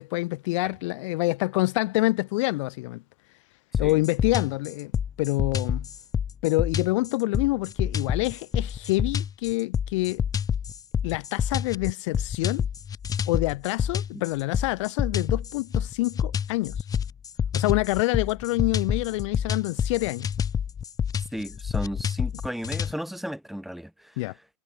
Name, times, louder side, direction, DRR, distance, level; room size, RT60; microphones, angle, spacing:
voice 1, 0.0-3.0 3.8-4.9 5.2-5.9 6.4-10.2 11.0-12.6 13.3-16.9 17.5-20.3 24.2-24.3, left 21 dB, 55° left, 1.2 m, -26 dB
sound 1, 3.7-22.9, left 7 dB, 20° left, 1.6 m, -28 dB
voice 2, 21.3-24.2, equal, ahead, 5.6 m, -34 dB
hypercardioid pair, 120°, 19 cm